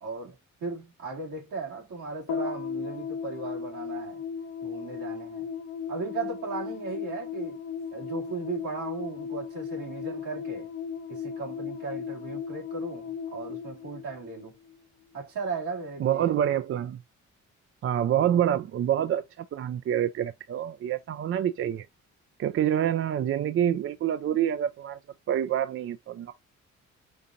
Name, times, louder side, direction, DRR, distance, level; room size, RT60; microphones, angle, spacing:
voice 1, 0.0-4.2 4.6-5.5 5.9-7.6 7.9-10.7 11.1-14.6 15.1-16.5, right 4 dB, 80° right, 2.6 m, -36 dB
sound 1, 2.3-14.8, left 7 dB, 70° left, 0.8 m, -36 dB
voice 2, 16.0-17.0 17.8-21.9 22.4-25.0 25.3-26.3, right 10 dB, 45° right, 0.4 m, -27 dB
5.3 x 2.5 x 2.8 m
cardioid pair, 90°, 30 cm